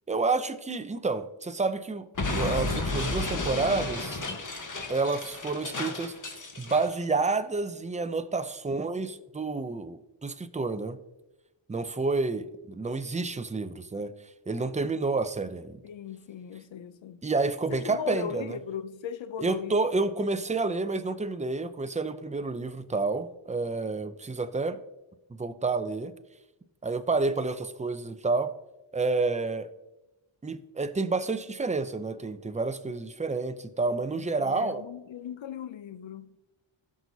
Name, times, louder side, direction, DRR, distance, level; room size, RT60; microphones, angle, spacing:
voice 1, 0.1-2.1 2.3-4.2 4.9-6.1 6.6-11.0 11.7-14.1 14.5-15.8 17.2-18.6 19.4-24.8 25.3-26.1 26.8-28.5 28.9-29.7 30.4-34.8, right 3 dB, 15° right, 0.5 m, -29 dB
Explosion, 2.2-6.9, left 2 dB, 40° left, 1.3 m, -32 dB
voice 2, 15.8-17.2 17.7-19.9 34.1-36.4, left 8 dB, 65° left, 0.6 m, -38 dB
15.5 x 6.2 x 2.7 m
wide cardioid pair, 90°, 48 cm